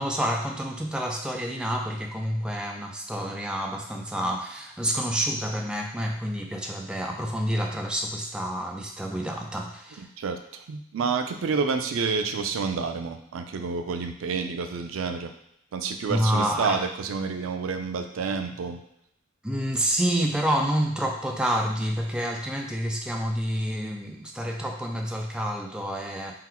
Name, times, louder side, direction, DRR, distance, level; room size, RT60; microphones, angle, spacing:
voice 1, 0.0-10.1 16.1-16.8 19.4-26.4, equal, 5° right, 1 dB, 0.4 m, -28 dB
voice 2, 10.0-15.3 15.7-18.8, right 5 dB, 90° right, 7 dB, 0.4 m, -29 dB
3.8 x 2.2 x 4.3 m, 0.78 s
head